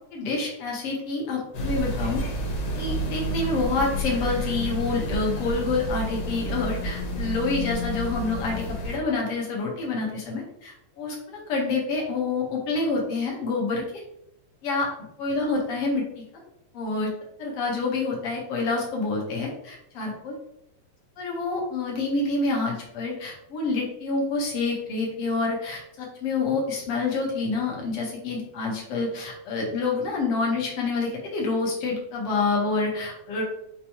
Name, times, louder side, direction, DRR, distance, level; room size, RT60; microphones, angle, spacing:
voice 1, 0.1-2.2 2.7-14.0 14.6-14.9 15.2-16.2 16.7-17.1 17.4-20.4 21.2-33.4, left 3 dB, 60° left, -2 dB, 1.8 m, -27 dB
sound 1, 1.5-9.0, equal, 85° left, 2.4 m, -30 dB
5.5 x 2.9 x 2.9 m, 0.78 s
omnidirectional pair, 3.4 m